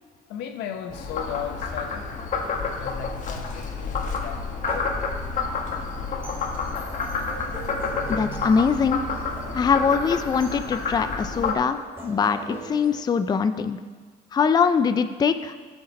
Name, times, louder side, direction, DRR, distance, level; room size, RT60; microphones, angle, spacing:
voice 1, 0.0-2.1 2.6-4.9, left 8 dB, 90° left, 5 dB, 1.1 m, -36 dB
Frog, 0.9-11.5, left 4 dB, 50° left, 1.4 m, -29 dB
sound 1, 4.7-13.0, right 2 dB, 15° right, 2.5 m, -43 dB
voice 2, 8.1-9.0 9.5-13.8 14.3-15.6, left 6 dB, 25° left, 10 dB, 0.4 m, -22 dB
14.5 x 6.5 x 4.3 m, 1.5 s
cardioid pair, 110°, 17 cm